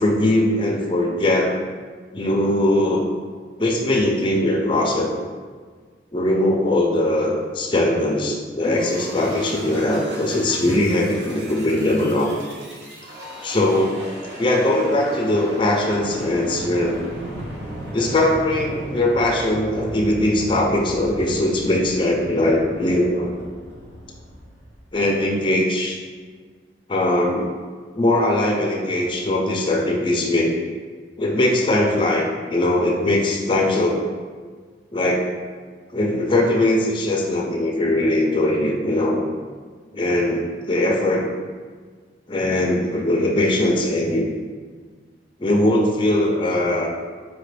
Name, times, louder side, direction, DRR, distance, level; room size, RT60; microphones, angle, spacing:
voice 1, 0.0-1.5 2.1-3.1 3.6-5.1 6.1-12.4 13.4-14.0 14.4-17.1 17.9-23.4 24.9-26.0 26.9-27.5 27.9-30.5 31.2-34.0 34.9-35.3 35.9-39.2 39.9-41.3 42.3-44.3 45.4-46.9, left 1 dB, 25° left, -1 dB, 0.4 m, -20 dB
sound 1, 8.6-25.3, right 1 dB, 70° right, 0.8 m, -36 dB
4.7 x 2.4 x 3.2 m, 1.6 s
head